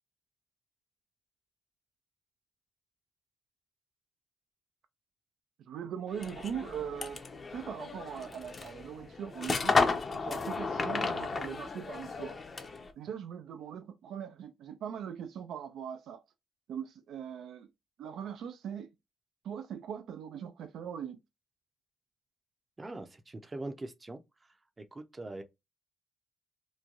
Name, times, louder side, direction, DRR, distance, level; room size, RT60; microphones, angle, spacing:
voice 1, 5.7-7.2 7.5-9.8 10.1-12.4 13.0-16.2 16.7-17.7 18.0-18.9 19.4-21.2, right 8 dB, 75° right, 0.3 m, -40 dB
sound 1, 6.1-12.9, left 4 dB, 35° left, 0.5 m, -33 dB
voice 2, 22.8-24.2 24.8-25.4, right 2 dB, 25° right, 0.5 m, -42 dB
3.1 x 2.2 x 2.4 m
cardioid pair, 90°, 0 cm